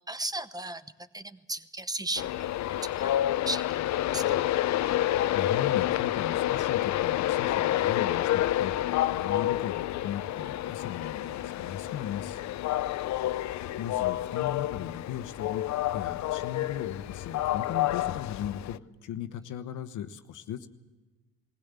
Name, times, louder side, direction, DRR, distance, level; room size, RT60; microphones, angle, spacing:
voice 1, 0.1-2.3 2.8-3.1 3.5-3.6 3.9-4.4 13.1-13.7, right 2 dB, 15° right, 13 dB, 0.9 m, -36 dB
Train, 2.2-18.8, left 13 dB, 65° left, 0.6 m, -29 dB
voice 2, 5.3-12.4 13.8-20.7, left 10 dB, 85° left, 9 dB, 1.1 m, -38 dB
20.5 x 16.0 x 8.2 m, 1.2 s
cardioid pair, 90°, 30 cm